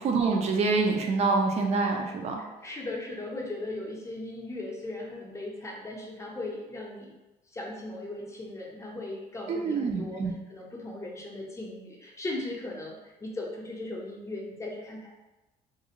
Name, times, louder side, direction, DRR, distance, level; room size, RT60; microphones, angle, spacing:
voice 1, 0.0-2.4 9.5-10.3, right 4 dB, 40° right, 2 dB, 0.4 m, -26 dB
voice 2, 2.4-7.1 7.5-10.2 10.5-15.1, left 2 dB, 15° left, -2 dB, 0.6 m, -38 dB
2.5 x 2.4 x 2.8 m, 1.0 s
cardioid pair, 110°, 17 cm